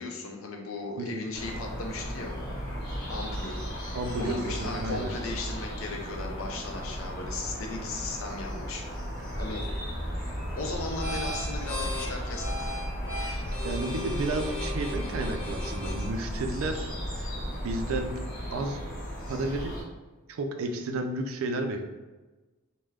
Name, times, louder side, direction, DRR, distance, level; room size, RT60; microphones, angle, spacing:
voice 1, 0.0-2.3 3.1-3.6 4.2-8.8 9.4-9.7 10.5-12.7, left 3 dB, 70° left, 1 dB, 0.5 m, -36 dB
voice 2, 1.0-1.3 3.9-5.1 10.1-10.3 13.2-17.3 17.6-18.1 18.5-18.8 19.3-19.7 20.3-21.8, right 2 dB, 75° right, 5 dB, 0.4 m, -32 dB
sound 1, 1.3-19.8, equal, 45° left, 1.1 m, -36 dB
sound 2, 9.3-18.1, left 1 dB, 10° left, 0.9 m, -35 dB
3.3 x 2.1 x 2.3 m, 1.2 s
head